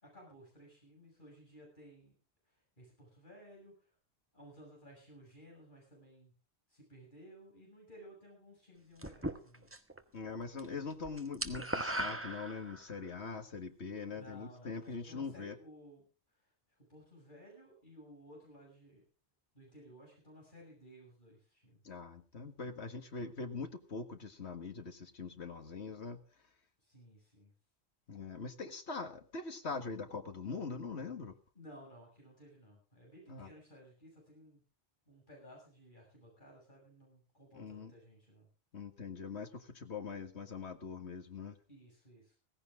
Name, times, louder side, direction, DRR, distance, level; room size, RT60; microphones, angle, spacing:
voice 1, 0.0-2.2 2.8-3.9 4.3-6.3 6.7-9.7 14.1-16.0 16.9-19.0 19.5-21.8 26.8-27.5 31.5-34.6 35.1-38.5 41.7-42.4, equal, 45° left, -2 dB, 7.1 m, -57 dB
sound 1, 9.0-10.0 10.3-10.6 10.9-13.0, right 1 dB, 10° right, 1.1 m, -38 dB
voice 2, 10.1-15.6 21.8-26.2 28.1-31.3 33.3-33.5 37.5-37.9 38.7-41.6, left 4 dB, 80° left, 7 dB, 2.0 m, -42 dB
16.5 x 15.5 x 3.7 m, 0.36 s
omnidirectional pair, 1.1 m